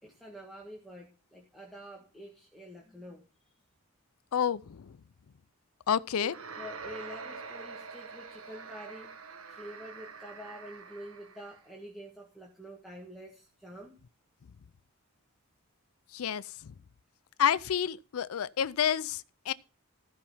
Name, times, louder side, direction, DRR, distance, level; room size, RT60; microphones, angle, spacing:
voice 1, 0.0-3.2 6.2-9.1 9.5-14.0, equal, ahead, 1.7 m, -47 dB
voice 2, 4.3-4.9 5.9-6.3 16.1-16.7 17.4-19.5, left 8 dB, 70° left, 0.4 m, -29 dB
sound 1, 6.2-11.6, right 5 dB, 70° right, 1.4 m, -45 dB
14.5 x 5.6 x 5.7 m
head